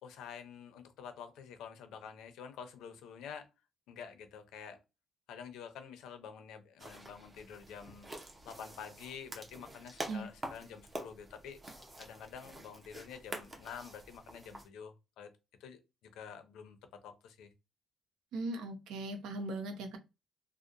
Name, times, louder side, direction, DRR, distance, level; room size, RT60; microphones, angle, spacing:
voice 1, 0.0-3.5 3.9-4.8 5.3-8.1 8.4-11.6 12.0-15.3 15.6-15.8 16.1-16.8 17.0-17.5, left 7 dB, 85° left, 0.5 m, -48 dB
sound 1, 6.8-14.7, right 1 dB, 25° right, 0.6 m, -47 dB
voice 2, 18.3-20.0, right 2 dB, 85° right, 0.6 m, -39 dB
2.7 x 2.0 x 2.5 m
cardioid pair, 130°, 0 cm